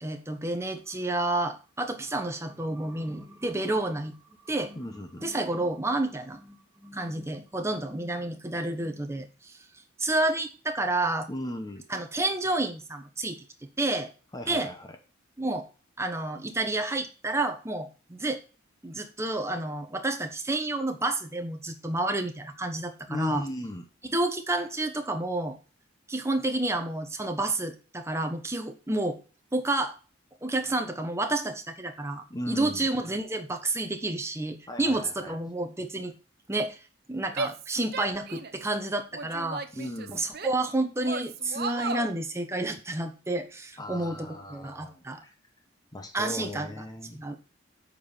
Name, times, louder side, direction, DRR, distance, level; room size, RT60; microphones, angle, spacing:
voice 1, 0.0-4.2 4.5-9.6 10.0-11.3 11.9-13.4 13.8-14.1 14.5-14.7 15.4-15.7 16.0-18.4 18.8-23.4 24.1-25.6 26.1-29.2 29.5-29.9 30.4-36.1 36.5-36.8 37.1-39.6 40.1-45.2 46.1-46.7 47.1-47.4, right 2 dB, 15° right, 5 dB, 1.0 m, -30 dB
voice 2, 4.8-5.3 11.3-11.8 14.3-15.0 23.1-23.9 32.3-32.9 34.7-35.4 39.7-40.2 43.8-45.4 45.9-47.2, left 1 dB, 20° left, 6 dB, 0.9 m, -37 dB
Female speech woman speaking / Yell, 37.3-38.7 39.1-40.7 41.0-42.1, right 4 dB, 50° right, 0.8 m, -35 dB
8.2 x 4.7 x 7.0 m, 0.36 s
head